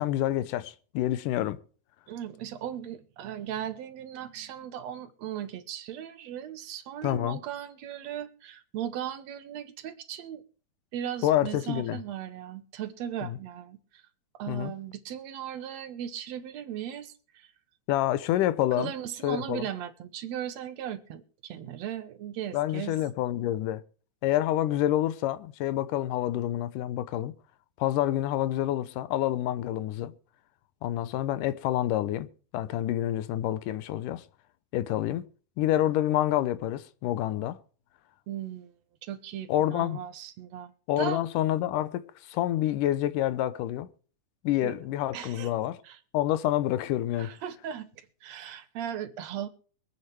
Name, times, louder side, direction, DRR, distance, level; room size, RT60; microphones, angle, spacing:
voice 1, 0.0-1.6 7.0-7.4 11.2-12.0 13.2-13.4 14.5-14.7 17.9-18.9 19.2-19.7 22.5-23.8 24.2-27.3 27.8-30.1 30.8-32.3 32.5-34.2 34.7-35.3 35.6-37.6 39.5-40.0 40.9-43.9 44.4-45.8 46.1-47.3, left 13 dB, 80° left, 2.3 m, -28 dB
voice 2, 2.1-10.4 10.9-13.8 14.4-17.5 18.8-23.0 38.3-38.7 39.0-41.2 44.6-44.8 45.1-45.5 45.8-46.0 47.2-49.5, right 10 dB, 65° right, 2.0 m, -37 dB
23.5 x 8.8 x 3.3 m
omnidirectional pair, 3.7 m